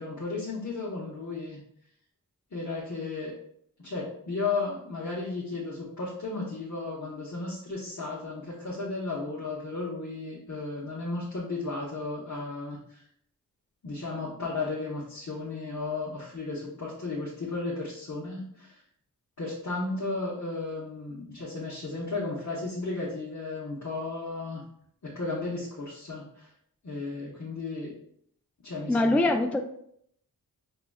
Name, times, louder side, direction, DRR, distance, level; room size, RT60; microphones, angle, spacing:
voice 1, 0.0-1.6 2.5-3.3 3.8-13.0 13.8-18.8 19.4-24.6 25.0-26.5 26.8-27.9 28.6-29.2, left 3 dB, 45° left, -6 dB, 1.1 m, -34 dB
voice 2, 28.9-29.6, left 2 dB, 5° left, 4 dB, 0.3 m, -23 dB
6.1 x 3.0 x 2.3 m, 0.69 s
wide cardioid pair, 80°, 39 cm